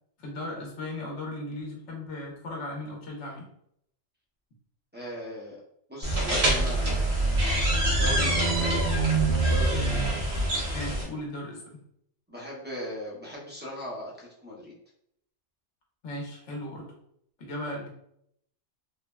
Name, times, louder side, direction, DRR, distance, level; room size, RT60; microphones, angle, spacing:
voice 1, 0.2-3.5 10.7-11.8 16.0-16.9 17.4-17.9, left 1 dB, 75° left, -1 dB, 1.1 m, -37 dB
voice 2, 4.9-5.6 5.9-7.2 7.8-8.8 9.1-10.2 12.3-14.7, equal, 15° right, -5 dB, 0.4 m, -38 dB
sound 1, 6.0-11.0, right 2 dB, 55° right, 1.0 m, -25 dB
3.3 x 2.1 x 2.2 m, 0.73 s
omnidirectional pair, 1.2 m